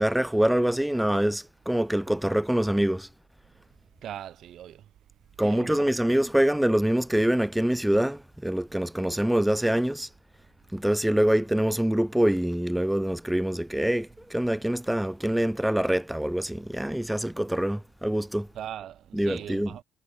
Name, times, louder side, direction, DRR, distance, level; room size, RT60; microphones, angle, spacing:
voice 1, 0.0-3.1 5.4-10.1 10.7-18.5 19.1-19.7, right 1 dB, 5° right, 0.7 m, -25 dB
voice 2, 4.0-4.9 5.4-5.9 18.5-19.8, right 11 dB, 70° right, 4.6 m, -39 dB
cardioid pair, 90°, 0 cm